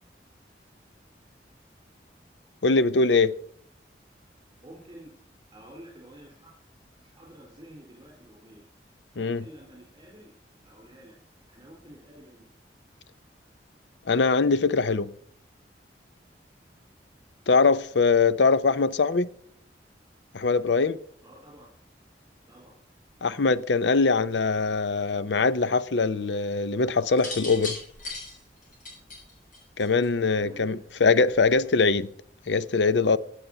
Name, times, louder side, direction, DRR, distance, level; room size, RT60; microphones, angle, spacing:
voice 1, 2.6-3.3 9.2-9.4 14.1-15.1 17.5-19.3 20.3-21.0 23.2-27.8 29.8-32.1 32.5-33.2, left 4 dB, 90° left, 0.6 m, -22 dB
voice 2, 4.6-5.1 5.5-6.5 7.0-8.7 9.1-10.3 10.6-11.2 11.5-12.4 21.2-21.7 22.5-22.7 30.3-30.9, equal, 25° right, 4.4 m, -49 dB
sound 1, 27.1-30.2 31.3-31.7, left 2 dB, 45° left, 6.7 m, -37 dB
17.0 x 8.4 x 5.6 m
head